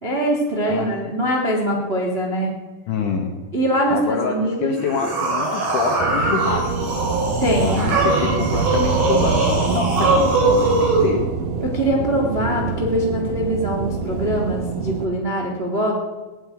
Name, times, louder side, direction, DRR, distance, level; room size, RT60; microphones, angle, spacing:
voice 1, 0.0-2.5 3.5-4.7 7.4-7.8 11.6-15.9, right 1 dB, 30° right, -1 dB, 1.0 m, -22 dB
voice 2, 2.9-3.3 3.9-6.9 7.6-11.2, left 5 dB, 65° left, 2 dB, 2.1 m, -26 dB
sound 1, 4.8-11.1, right 2 dB, 55° right, 5.8 m, -21 dB
sound 2, 6.0-15.1, right 5 dB, 85° right, 1.9 m, -25 dB
17.5 x 8.8 x 9.5 m, 1.3 s
omnidirectional pair, 5.2 m